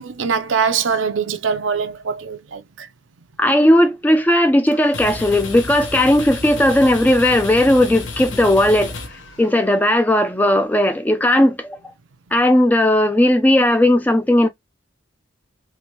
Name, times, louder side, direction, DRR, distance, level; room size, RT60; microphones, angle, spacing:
voice 1, 0.0-2.9, right 6 dB, 80° right, 0.6 m, -22 dB
voice 2, 3.4-8.9 9.4-11.8 12.3-14.5, left 1 dB, 10° left, 0.3 m, -16 dB
sound 1, 4.7-9.8, left 3 dB, 70° left, 0.7 m, -32 dB
3.3 x 2.6 x 2.8 m
head